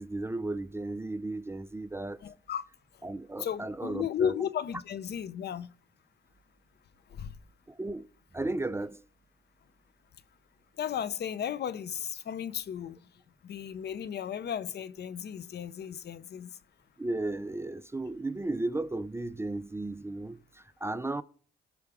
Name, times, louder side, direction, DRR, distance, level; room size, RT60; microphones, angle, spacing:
voice 1, 0.0-2.2 3.0-4.3 7.7-8.1 8.3-9.0 17.0-21.2, right 2 dB, 15° right, 0.4 m, -34 dB
voice 2, 2.2-2.6 3.4-5.7 7.1-7.3 10.8-13.0 13.4-16.5, left 8 dB, 55° left, 0.7 m, -34 dB
18.5 x 6.3 x 3.6 m
cardioid pair, 90°, 20 cm